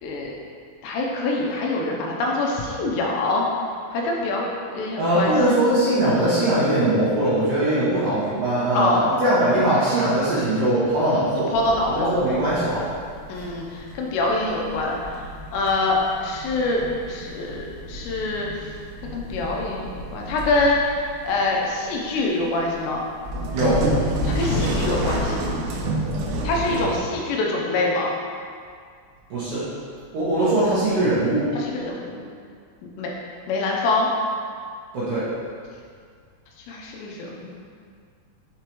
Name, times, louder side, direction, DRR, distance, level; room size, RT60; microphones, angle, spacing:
voice 1, 0.0-0.3 0.8-3.5 3.9-4.5 4.7-5.3 8.7-9.1 11.5-12.2 13.3-18.7 19.1-23.0 24.3-25.4 26.4-28.1 31.5-32.2 33.0-33.1 33.5-34.1 36.7-37.6, left 2 dB, 80° left, -1 dB, 2.8 m, -25 dB
voice 2, 5.0-11.5 12.0-12.9 13.3-13.4 23.5-23.8 29.3-29.7 30.1-31.4 34.9-35.3, right 1 dB, 65° right, -11 dB, 2.3 m, -21 dB
sound 1, 11.5-27.0, right 1 dB, 80° right, 2.9 m, -30 dB
6.7 x 4.8 x 3.0 m, 2.1 s
omnidirectional pair, 5.0 m